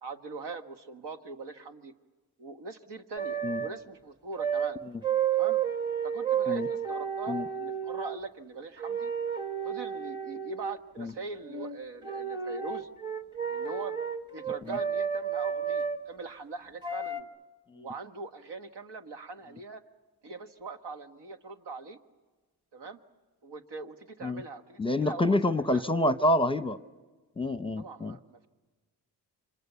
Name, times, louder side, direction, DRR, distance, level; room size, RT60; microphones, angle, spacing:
voice 1, 0.0-1.9 2.4-4.8 5.3-5.6 6.0-9.1 9.6-12.9 13.5-14.0 14.3-17.3 17.7-19.8 20.2-22.0 22.7-23.0 23.4-25.4 25.7-25.8 27.8-28.5, right 4 dB, 80° right, 6 dB, 1.6 m, -42 dB
sound 1, 3.2-3.7 4.4-4.7 5.0-8.2 8.8-10.8 11.5-11.8 12.0-16.0 16.8-17.2, right 7 dB, 10° right, 1.2 m, -31 dB
voice 2, 24.8-26.8 27.4-28.2, left 1 dB, 15° left, 11 dB, 0.8 m, -27 dB
29.0 x 25.5 x 6.9 m, 1.3 s
cardioid pair, 95°, 41 cm